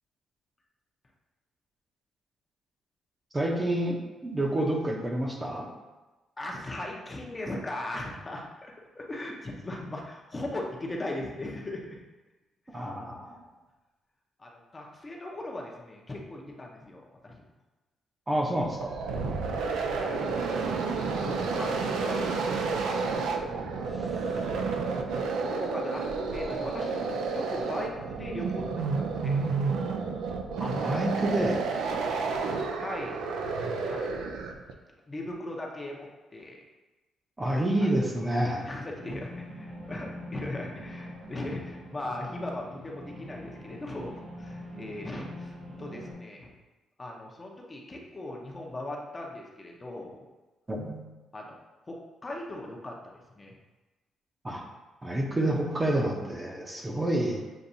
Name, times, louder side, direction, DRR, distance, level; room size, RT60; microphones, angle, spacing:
voice 1, 3.3-4.0 4.2-5.7 12.7-13.4 18.3-19.0 30.6-31.6 37.4-38.7 50.7-51.0 54.4-54.6 55.0-57.4, right 1 dB, 20° right, 0 dB, 0.7 m, -28 dB
voice 2, 6.4-12.0 12.7-13.2 14.4-17.4 19.9-20.3 20.9-21.7 22.0-22.4 22.7-24.5 24.9-26.0 26.3-27.0 27.3-29.4 32.7-33.3 33.9-34.3 35.1-36.1 36.3-36.6 37.8-46.5 47.0-50.2 51.3-51.5 51.9-52.0 52.2-52.9 53.3-53.6, left 1 dB, 25° left, -1 dB, 0.7 m, -39 dB
sound 1, 18.6-34.7, right 4 dB, 85° right, 0.4 m, -30 dB
sound 2, 38.9-46.1, equal, 60° right, 1.4 m, -43 dB
7.1 x 2.6 x 2.7 m, 1.2 s
cardioid pair, 90°, 0 cm